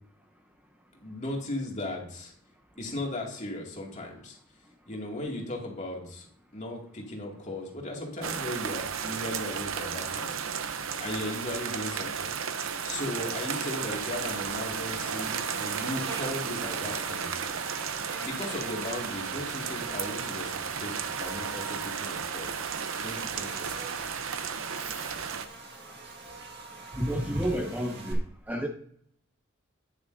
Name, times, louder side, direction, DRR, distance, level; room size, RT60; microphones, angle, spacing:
voice 1, 1.0-2.3 2.8-4.4 4.9-6.3 6.5-10.4 11.0-12.4 12.8-17.3 18.2-22.5 23.0-23.7, left 1 dB, 35° left, 2.3 m, -37 dB
sound 1, 8.2-25.5, right 7 dB, 75° right, 0.7 m, -34 dB
Buzz, 13.3-28.1, right 4 dB, 55° right, 1.8 m, -44 dB
voice 2, 24.8-25.1 26.9-28.2 28.5-28.7, equal, 10° right, 0.7 m, -30 dB
10.0 x 9.6 x 2.7 m
head